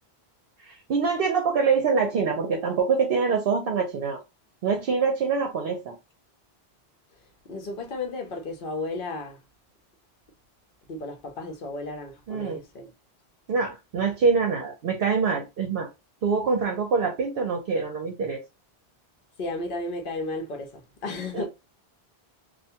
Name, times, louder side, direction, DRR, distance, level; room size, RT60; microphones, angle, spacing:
voice 1, 0.6-4.2 4.6-5.9 12.3-12.6 13.5-15.9 16.2-18.4 21.3-21.4, right 5 dB, 65° right, 0.8 m, -25 dB
voice 2, 7.4-9.4 10.9-12.9 19.4-21.4, left 2 dB, 60° left, 0.9 m, -33 dB
2.4 x 2.2 x 2.7 m
omnidirectional pair, 1.1 m